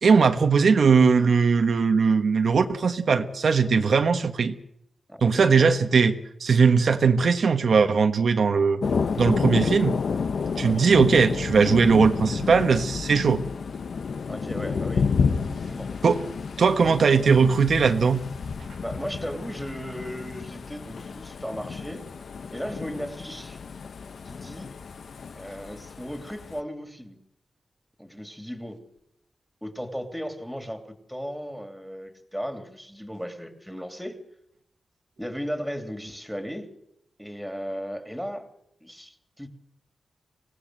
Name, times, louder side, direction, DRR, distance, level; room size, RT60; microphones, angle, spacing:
voice 1, 0.0-4.5 5.2-8.8 9.2-10.0 10.6-13.4 16.0-16.2 16.6-18.2, right 5 dB, 70° right, 6 dB, 1.4 m, -20 dB
voice 2, 5.1-5.7 10.5-10.9 14.3-15.1 15.5-15.9 18.8-22.1 22.5-23.6 24.2-24.7 25.3-27.2 28.0-28.8 29.6-34.2 35.2-36.7 37.2-38.5 38.8-39.5, equal, ahead, 6 dB, 3.0 m, -36 dB
Thunder, 8.8-26.6, left 5 dB, 75° left, 1.1 m, -30 dB
25.0 x 17.5 x 8.1 m, 0.75 s
wide cardioid pair, 125°, 0 cm